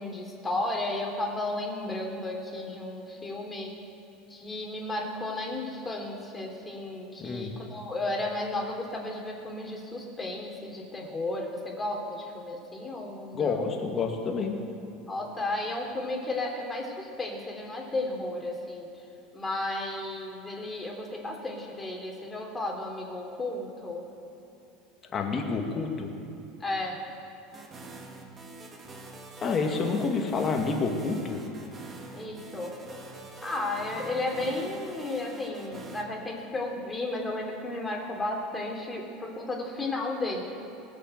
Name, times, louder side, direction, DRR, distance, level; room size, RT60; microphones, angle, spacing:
voice 1, 0.0-3.7 4.3-13.7 15.1-18.9 19.3-24.0 26.6-27.0 32.1-32.7 33.4-40.4, left 2 dB, 20° left, 0 dB, 3.3 m, -33 dB
voice 2, 7.2-7.5 13.3-14.6 25.1-26.1 29.4-31.4, left 4 dB, 35° left, 3 dB, 2.1 m, -28 dB
sound 1, 27.5-36.0, right 3 dB, 30° right, 1.9 m, -45 dB
20.0 x 6.7 x 7.9 m, 3.0 s
hypercardioid pair, 80°, 0 cm